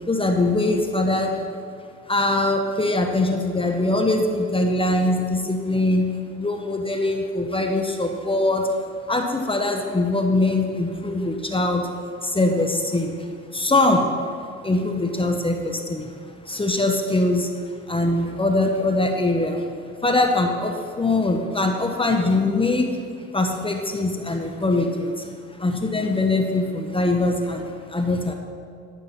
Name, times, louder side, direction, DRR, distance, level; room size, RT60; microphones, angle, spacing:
voice 1, 0.1-1.4 2.1-8.7 9.1-11.9 12.2-13.3 13.5-14.1 14.6-16.1 16.4-17.5 17.9-19.7 20.0-23.0 23.3-25.3 25.6-28.3, left 2 dB, 20° left, 3 dB, 1.1 m, -22 dB
13.0 x 6.1 x 5.9 m, 2.3 s
cardioid pair, 90°, 30 cm